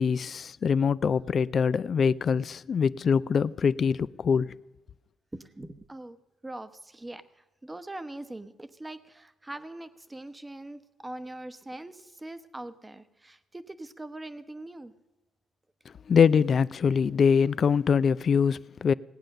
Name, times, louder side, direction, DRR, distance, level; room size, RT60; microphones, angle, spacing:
voice 1, 0.0-4.6 16.1-18.9, left 6 dB, 50° left, 0.4 m, -23 dB
voice 2, 5.3-6.2 6.4-14.9, right 1 dB, 15° right, 0.9 m, -42 dB
18.5 x 8.9 x 6.6 m
cardioid pair, 90°, 0 cm